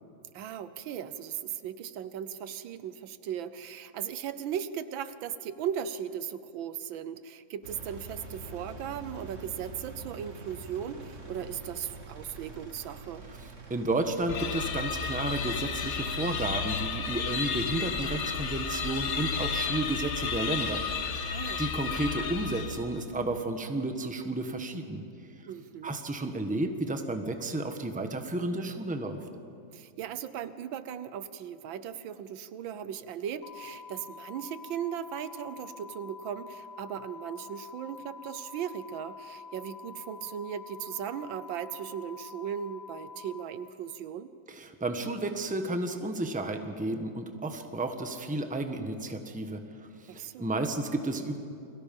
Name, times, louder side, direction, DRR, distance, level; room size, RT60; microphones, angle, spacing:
voice 1, 0.3-13.3 21.3-21.6 25.5-26.0 29.7-44.3 50.1-50.5, right 9 dB, 85° right, 13 dB, 1.6 m, -37 dB
Engine, 7.6-16.1, right 3 dB, 40° right, 2.3 m, -46 dB
voice 2, 13.7-25.0 25.8-29.2 44.5-51.4, right 2 dB, 5° right, 6 dB, 1.0 m, -32 dB
sound 1, 14.3-23.0, left 5 dB, 55° left, 1.4 m, -32 dB
sound 2, 33.4-43.4, left 5 dB, 90° left, 2.5 m, -47 dB
29.5 x 22.5 x 5.3 m, 2.6 s
omnidirectional pair, 2.1 m